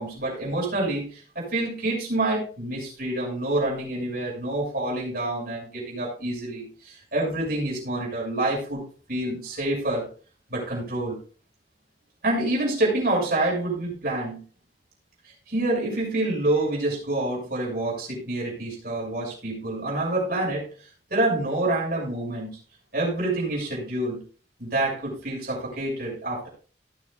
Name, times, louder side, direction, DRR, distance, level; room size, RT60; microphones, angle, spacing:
voice 1, 0.0-8.8 9.1-10.1 10.5-11.2 12.2-14.4 15.5-20.7 21.1-22.6 22.9-24.2 24.6-26.5, right 2 dB, 55° right, -3 dB, 6.6 m, -27 dB
18.5 x 7.3 x 2.6 m, 0.38 s
head